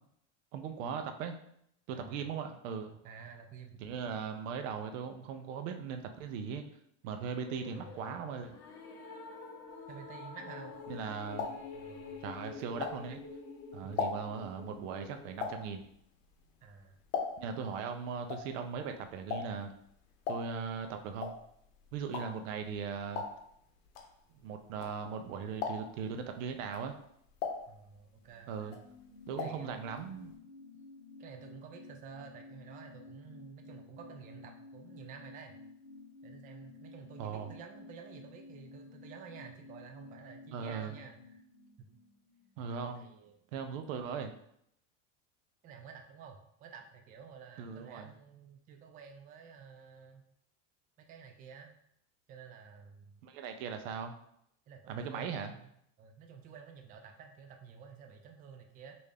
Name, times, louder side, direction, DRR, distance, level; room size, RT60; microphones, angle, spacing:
voice 1, 0.5-1.4 1.9-3.0 3.8-6.6 7.0-8.5 10.9-11.5 12.2-13.2 13.7-15.8 17.4-19.7 20.3-21.3 21.9-23.3 24.4-26.9 28.5-28.7 29.3-30.3 37.2-37.5 40.5-41.0 42.6-43.1 43.5-44.3 47.6-48.1 53.2-54.1 54.9-55.5, right 6 dB, 85° right, 7 dB, 0.6 m, -39 dB
voice 2, 1.9-2.2 3.0-3.8 7.6-8.2 9.9-10.8 11.4-12.2 13.8-13.9 16.6-17.0 25.2-25.4 27.6-28.8 29.3-30.1 31.2-35.6 36.2-41.4 42.7-43.4 45.6-50.2 51.0-51.7 52.3-53.1 54.7-55.7 56.0-58.9, right 6 dB, 25° right, 4 dB, 0.3 m, -51 dB
sound 1, 7.3-15.6, left 4 dB, 40° left, 0.6 m, -48 dB
sound 2, 10.8-13.4 13.7-17.7 17.9-25.2 25.5-26.1 26.6-28.3 28.6-29.7 29.9-30.0 30.3-30.4, left 5 dB, 85° left, 0.7 m, -39 dB
sound 3, 27.9-43.2 43.5-43.6, left 3 dB, 15° left, 1.0 m, -53 dB
3.3 x 2.6 x 3.3 m, 0.72 s
supercardioid pair, 120°, 38 cm